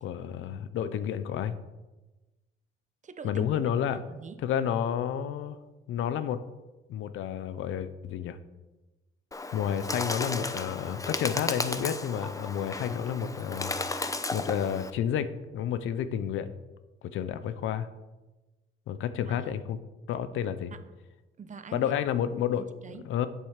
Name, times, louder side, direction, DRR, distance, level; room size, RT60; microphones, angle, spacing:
voice 1, 0.0-1.6 3.2-4.0 4.4-5.6 5.9-6.4 6.9-8.4 9.5-13.7 14.3-16.5 17.0-17.9 18.9-19.8 20.1-20.7 21.7-22.7 23.0-23.3, left 9 dB, 85° left, 0.8 m, -30 dB
voice 2, 3.0-3.5 3.9-4.5 19.3-19.5 20.7-20.8 21.4-21.9 22.6-23.0, right 6 dB, 40° right, 0.8 m, -44 dB
Bird, 9.3-14.9, left 2 dB, 15° left, 0.8 m, -34 dB
8.2 x 7.4 x 6.6 m
cardioid pair, 90°, 20 cm